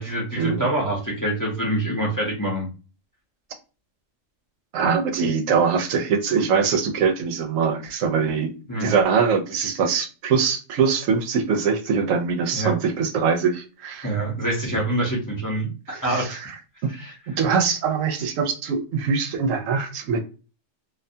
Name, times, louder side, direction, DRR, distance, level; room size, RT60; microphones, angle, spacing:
voice 1, 0.0-2.7 8.7-8.9 12.5-12.7 14.0-16.4 17.0-17.1, right 1 dB, 20° left, 0.6 m, -25 dB
voice 2, 4.7-8.5 8.8-14.2 15.9-16.6 16.8-16.9 17.3-20.2, right 6 dB, 80° right, 1.0 m, -23 dB
2.6 x 2.2 x 2.6 m
omnidirectional pair, 1.3 m